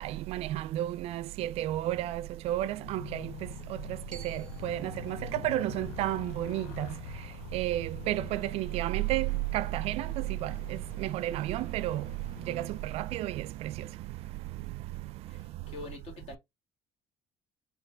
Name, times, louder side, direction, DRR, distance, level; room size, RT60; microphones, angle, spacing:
voice 1, 0.0-3.3 4.2-6.9 7.5-12.1 12.4-13.9, right 15 dB, 65° right, 0.4 m, -32 dB
Motorcycle, 2.7-13.4, left 11 dB, 85° left, 0.5 m, -46 dB
Glockenspiel, 4.1-8.2, right 7 dB, 5° left, 1.5 m, -57 dB
voice 2, 15.2-16.4, left 3 dB, 60° left, 2.5 m, -45 dB
4.4 x 2.9 x 3.4 m
cardioid pair, 120°, 11 cm